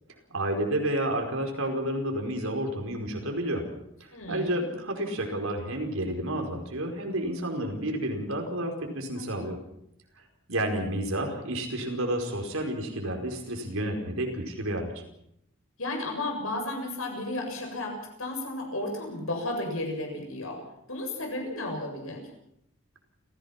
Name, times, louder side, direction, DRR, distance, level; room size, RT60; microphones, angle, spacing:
voice 1, 0.3-3.7 4.0-9.6 10.5-15.0, right 1 dB, 80° right, 2 dB, 5.1 m, -30 dB
voice 2, 4.1-4.7 9.2-9.5 15.8-20.6 20.9-22.3, left 2 dB, 80° left, 3 dB, 7.4 m, -33 dB
29.5 x 16.5 x 6.0 m, 0.74 s
head